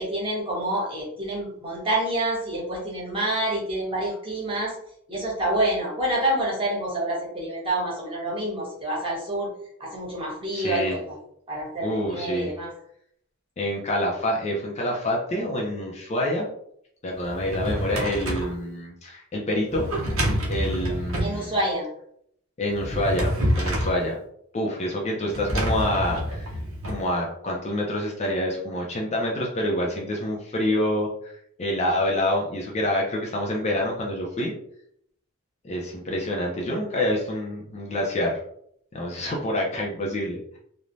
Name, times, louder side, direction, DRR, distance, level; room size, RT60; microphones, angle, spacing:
voice 1, 0.0-4.7 5.1-9.5 9.8-11.1 11.5-12.7 21.2-21.9, right 1 dB, 25° right, -5 dB, 1.1 m, -27 dB
voice 2, 10.5-11.0 11.8-12.5 13.6-16.5 17.0-19.9 20.5-21.5 22.6-24.2 24.5-26.5 26.9-31.3 31.6-34.5 35.6-38.4 38.9-40.6, left 1 dB, 30° left, -2 dB, 0.5 m, -27 dB
Drawer open or close, 17.2-18.5 19.7-21.4 22.7-24.0 25.3-27.0, equal, 70° right, 0.8 m, -27 dB
3.1 x 2.1 x 2.5 m, 0.69 s
head